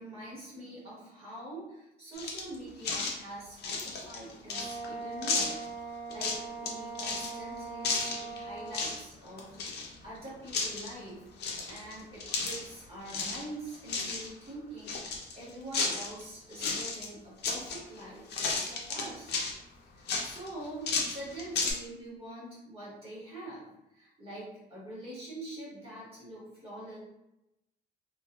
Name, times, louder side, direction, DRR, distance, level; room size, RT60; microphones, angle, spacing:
voice 1, 0.0-5.6 6.1-9.6 10.0-11.3 11.7-19.4 19.9-23.6 23.9-27.0, right 1 dB, 30° right, -7 dB, 1.3 m, -44 dB
sound 1, 2.2-2.6 2.8-3.2 3.6-4.9 5.2-5.7 6.1-6.7 7.0-7.3 7.8-8.4 8.7-9.0 9.3-10.2 10.5-10.9 11.4-12.7 13.1-13.4 13.7-14.3 14.9-16.2 16.5-17.1 17.4-18.0 18.3-19.6 20.1-21.7, left 4 dB, 65° left, 0.6 m, -33 dB
Wind instrument woodwind instrument, 4.5-9.0, right 4 dB, 35° left, 1.0 m, -41 dB
2.9 x 2.5 x 2.3 m, 0.88 s
cardioid pair, 160°, 19 cm